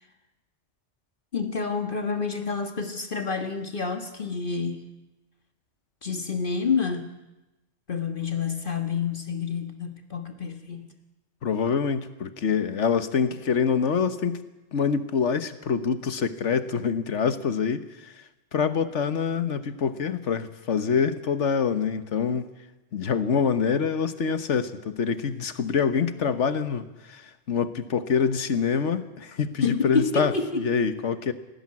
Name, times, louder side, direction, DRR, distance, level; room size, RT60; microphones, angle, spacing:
voice 1, 1.3-4.8 6.0-7.2 7.9-10.9 29.6-30.7, left 5 dB, 50° left, 1.6 m, -28 dB
voice 2, 11.4-14.4 14.7-18.1 18.5-22.5 22.9-31.3, left 6 dB, 80° left, 1.5 m, -25 dB
20.0 x 17.0 x 9.8 m
omnidirectional pair, 1.2 m